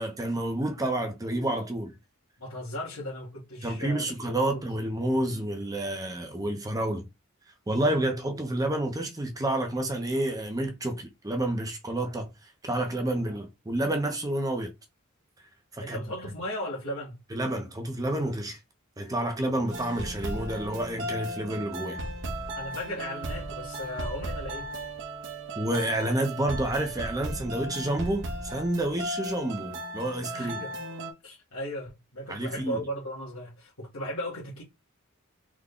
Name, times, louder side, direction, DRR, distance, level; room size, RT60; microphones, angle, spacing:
voice 1, 0.0-1.9 3.6-7.1 7.7-12.3 12.6-14.7 15.7-16.0 17.3-18.6 19.0-22.0 25.6-30.6 32.3-32.8, right 1 dB, 15° right, 0.6 m, -29 dB
voice 2, 2.4-4.1 4.4-4.6 15.8-17.2 22.6-24.7 30.3-30.8 31.2-34.6, equal, 70° left, 1.3 m, -36 dB
sound 1, 19.7-31.1, right 1 dB, 60° right, 0.8 m, -36 dB
3.6 x 2.2 x 3.6 m
head